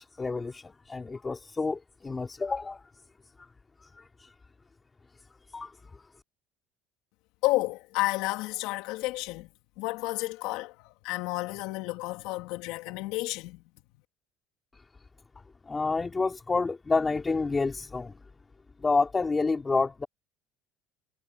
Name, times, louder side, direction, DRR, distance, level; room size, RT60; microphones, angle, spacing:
voice 1, 0.0-2.8 3.4-3.5 3.8-4.3 5.5-6.0 15.7-18.2 18.8-20.1, left 4 dB, 15° left, 4.0 m, -29 dB
voice 2, 7.4-13.6, left 20 dB, 70° left, 3.6 m, -31 dB
cardioid pair, 140°, 0 cm